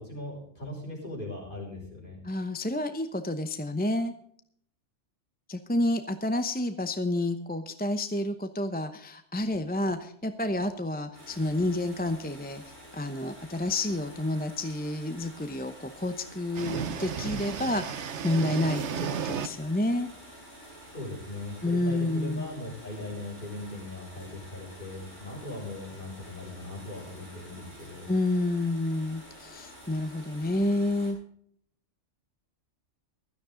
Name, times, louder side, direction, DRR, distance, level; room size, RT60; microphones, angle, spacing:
voice 1, 0.0-2.2 20.9-28.1, left 2 dB, 45° left, -2 dB, 6.3 m, -39 dB
voice 2, 2.2-4.1 5.5-12.6 12.9-20.1 21.6-22.5 28.1-31.2, left 1 dB, 10° left, 8 dB, 0.7 m, -29 dB
sound 1, 11.1-31.1, equal, 40° right, 7.6 m, -49 dB
sound 2, 16.5-19.5, right 7 dB, 70° right, 1.1 m, -33 dB
16.5 x 13.0 x 3.9 m, 0.65 s
omnidirectional pair, 1.3 m